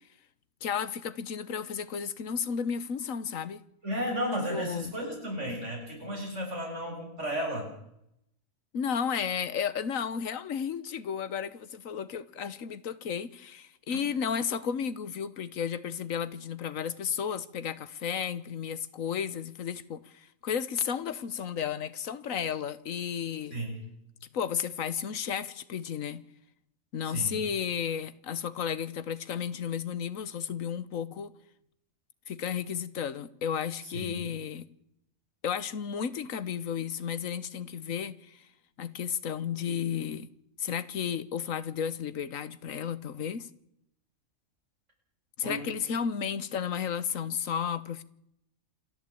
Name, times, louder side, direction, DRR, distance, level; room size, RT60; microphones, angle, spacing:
voice 1, 0.6-3.6 4.5-4.9 8.7-23.6 24.3-26.2 26.9-31.3 32.3-34.7 35.4-38.5 38.8-40.3 40.6-43.5 45.4-48.0, left 7 dB, 80° left, 1.5 m, -33 dB
voice 2, 3.8-7.7 23.5-23.9 27.0-27.4 33.8-34.3 45.4-45.6, equal, 60° right, 7.5 m, -34 dB
27.5 x 12.5 x 8.5 m
omnidirectional pair, 1.4 m